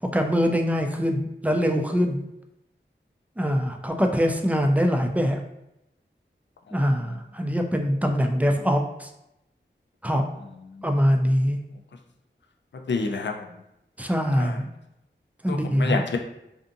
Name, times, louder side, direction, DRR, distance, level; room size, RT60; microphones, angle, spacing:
voice 1, 0.0-2.2 3.4-5.4 6.7-9.1 10.0-10.2 10.8-11.6 14.0-14.7 15.4-16.0, equal, 10° right, 3 dB, 0.3 m, -23 dB
voice 2, 12.7-13.5 14.4-14.6 15.5-16.2, left 4 dB, 70° left, 3 dB, 0.4 m, -29 dB
2.6 x 2.4 x 2.5 m, 0.86 s
wide cardioid pair, 40°, 20 cm